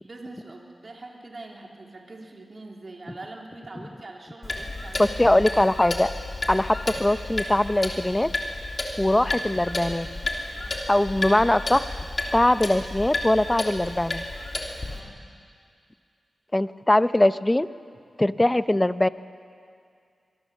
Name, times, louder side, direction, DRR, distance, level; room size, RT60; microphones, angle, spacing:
voice 1, 0.0-5.4 10.5-10.9 14.9-15.2, right 2 dB, 45° right, 0 dB, 3.4 m, -43 dB
Clock, 4.4-15.0, left 2 dB, 40° left, 3.4 m, -32 dB
voice 2, 5.0-6.1 6.5-8.3 9.0-10.1 10.9-11.8 12.3-14.2 16.5-17.7 18.2-19.1, left 1 dB, 15° left, 13 dB, 0.6 m, -21 dB
25.0 x 21.5 x 7.3 m, 2.3 s
wide cardioid pair, 95°, 0 cm